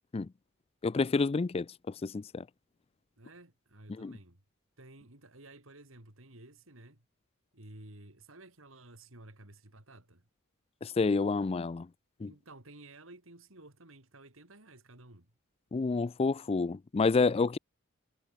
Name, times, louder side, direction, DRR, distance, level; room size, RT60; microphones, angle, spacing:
voice 1, 0.8-1.7 2.0-2.4 4.0-4.1 10.8-11.9 12.2-12.3 15.7-17.6, left 4 dB, 30° left, 0.4 m, -29 dB
voice 2, 3.2-4.4 4.8-7.1 7.5-10.3 12.2-15.3, right 2 dB, 70° right, 3.7 m, -53 dB
head